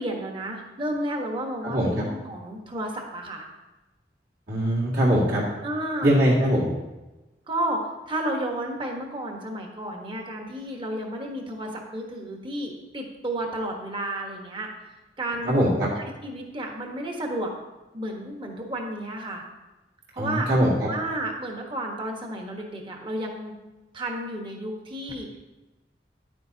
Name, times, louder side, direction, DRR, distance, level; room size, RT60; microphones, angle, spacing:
voice 1, 0.0-3.5 5.6-6.2 7.5-14.7 15.2-15.6 16.2-17.5 17.9-19.4 20.1-20.5 20.9-23.5 23.9-25.3, right 1 dB, 30° right, 1 dB, 1.2 m, -32 dB
voice 2, 4.5-5.4 6.0-6.7 15.5-15.9 20.2-20.9, equal, 65° right, -7 dB, 2.1 m, -21 dB
10.0 x 9.4 x 2.8 m, 1.1 s
head